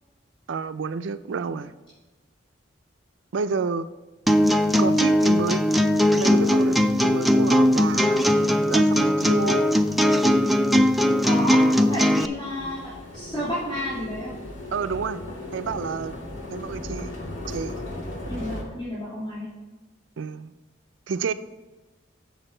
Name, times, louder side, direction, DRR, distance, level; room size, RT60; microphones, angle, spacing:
voice 1, 0.5-1.7 3.3-3.9 4.8-5.6 6.1-9.7 14.7-15.2 15.5-16.1 16.5-17.1 17.5-17.8 20.2-20.5 21.1-21.3, right 5 dB, 75° right, 12 dB, 0.4 m, -30 dB
sound 1, 4.3-12.3, equal, ahead, 0.4 m, -19 dB
voice 2, 11.2-12.8 13.1-14.4 18.3-19.5, left 1 dB, 25° left, -10 dB, 3.1 m, -31 dB
sound 2, 12.0-18.6, left 1 dB, 90° left, 2.6 m, -36 dB
7.9 x 6.9 x 4.4 m, 1.2 s
head